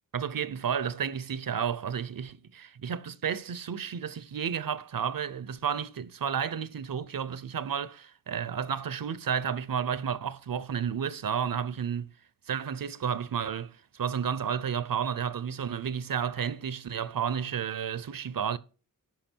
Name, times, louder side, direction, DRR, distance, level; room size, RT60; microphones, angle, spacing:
voice 1, 0.1-12.1 12.5-18.6, right 7 dB, 75° right, 0.7 m, -32 dB
13.5 x 5.1 x 4.4 m
cardioid pair, 50°, 34 cm